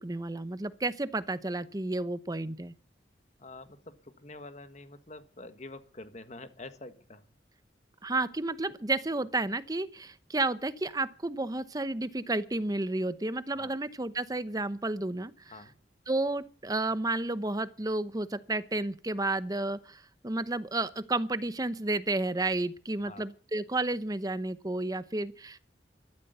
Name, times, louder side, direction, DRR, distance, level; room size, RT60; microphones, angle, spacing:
voice 1, 0.0-2.7 8.0-15.3 16.1-25.6, right 2 dB, 20° right, 0.8 m, -31 dB
voice 2, 3.4-7.3 13.6-13.8 15.5-15.8 23.0-23.2, left 2 dB, 40° left, 1.5 m, -47 dB
13.0 x 12.0 x 8.0 m
head